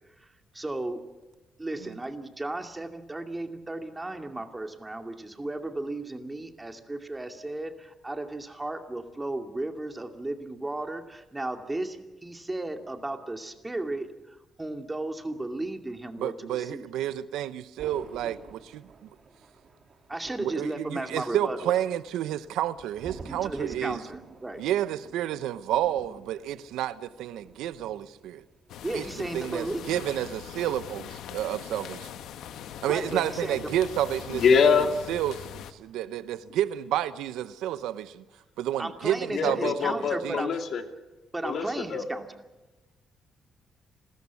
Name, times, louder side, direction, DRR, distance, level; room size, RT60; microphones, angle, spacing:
voice 1, 0.5-1.0 1.6-16.9 20.1-21.7 23.3-24.6 28.8-29.9 32.8-33.6 38.8-40.5 41.3-42.3, right 2 dB, 15° right, 2.4 m, -35 dB
voice 2, 16.2-19.1 20.4-24.0 24.6-28.4 28.9-29.0 29.3-32.1 32.8-38.2 38.6-40.4, right 12 dB, 90° right, 0.8 m, -30 dB
Thunder, 17.8-28.4 28.7-29.0, right 4 dB, 40° right, 3.5 m, -49 dB
sound 1, 28.7-35.7, left 9 dB, 80° left, 1.3 m, -42 dB
voice 3, 34.3-34.9 39.3-40.8 41.4-42.0, left 6 dB, 65° left, 2.4 m, -24 dB
29.5 x 13.5 x 8.3 m
cardioid pair, 90°, 0 cm